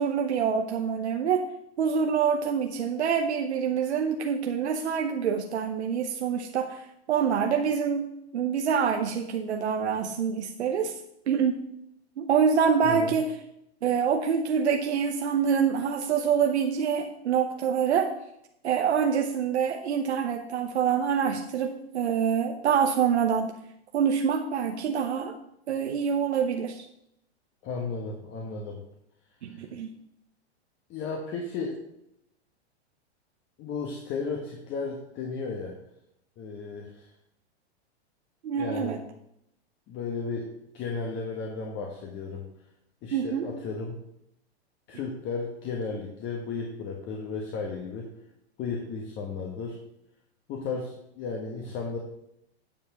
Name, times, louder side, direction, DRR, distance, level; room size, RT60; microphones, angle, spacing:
voice 1, 0.0-1.5 1.8-11.0 11.3-11.6 12.2-13.4 13.8-18.1 18.6-23.5 23.9-25.4 25.7-26.8 29.4-29.9 38.4-39.0 43.1-43.5, right 7 dB, 80° right, 4 dB, 0.9 m, -26 dB
voice 2, 12.8-13.1 27.6-28.8 29.5-29.6 30.9-31.8 33.6-35.7 36.4-37.1 38.5-39.0 39.9-40.5 40.7-42.4 43.0-44.0 44.9-48.1 48.6-49.8 50.5-52.0, left 4 dB, 35° left, 1 dB, 1.4 m, -34 dB
9.0 x 4.9 x 5.6 m, 0.80 s
hypercardioid pair, 115°, 33 cm